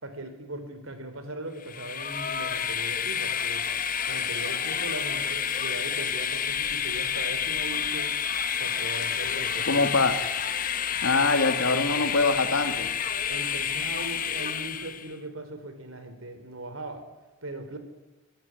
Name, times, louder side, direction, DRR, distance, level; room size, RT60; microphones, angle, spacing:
voice 1, 0.0-3.7 4.1-8.2 8.6-9.9 11.9-12.1 13.3-17.1 17.4-17.8, right 2 dB, 90° right, 8 dB, 4.1 m, -39 dB
Train, 1.6-15.1, left 7 dB, 40° left, 1.2 m, -29 dB
voice 2, 9.6-10.2 11.0-12.9, left 3 dB, 80° left, 7 dB, 2.4 m, -24 dB
26.0 x 13.5 x 9.8 m, 1.2 s
head